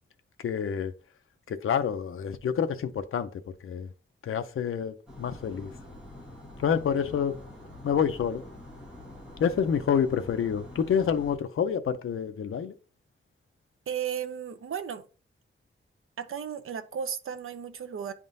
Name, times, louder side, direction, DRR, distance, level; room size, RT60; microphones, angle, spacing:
voice 1, 0.4-0.9 1.5-3.3 3.6-3.9 4.2-5.7 6.6-7.4 7.8-8.4 9.4-12.7, left 7 dB, 75° left, 0.5 m, -28 dB
sound 1, 5.1-11.4, left 1 dB, 5° right, 1.7 m, -46 dB
voice 2, 13.9-15.0 16.2-18.1, right 8 dB, 80° right, 0.6 m, -34 dB
10.0 x 3.6 x 2.6 m
wide cardioid pair, 180°, 21 cm